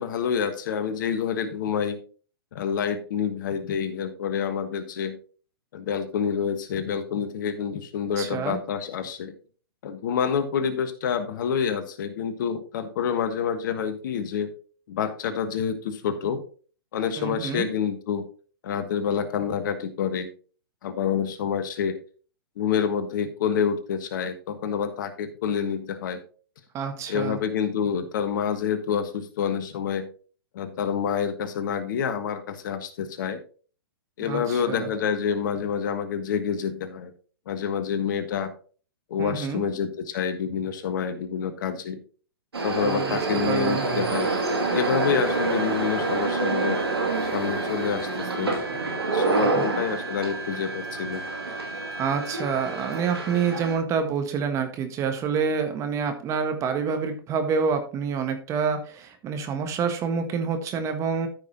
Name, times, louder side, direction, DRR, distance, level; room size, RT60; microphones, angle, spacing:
voice 1, 0.0-2.0 2.5-5.2 5.7-9.3 9.8-14.5 14.9-16.4 16.9-18.2 18.6-20.3 20.8-22.0 22.6-26.2 27.1-30.1 30.5-33.4 34.2-37.1 37.5-38.5 39.1-42.0 42.6-44.3 44.7-46.8 47.3-48.6 49.1-51.3, left 7 dB, 55° left, 10 dB, 1.4 m, -27 dB
voice 2, 8.2-8.6 17.2-17.7 26.7-27.4 34.2-34.9 39.2-39.6 42.8-43.2 43.4-43.8 49.4-49.6 52.0-61.3, right 6 dB, 25° right, 7 dB, 1.4 m, -27 dB
sound 1, 42.5-53.8, right 3 dB, 85° right, 2.5 m, -27 dB
13.5 x 5.8 x 2.9 m, 0.39 s
hypercardioid pair, 125°, 13 cm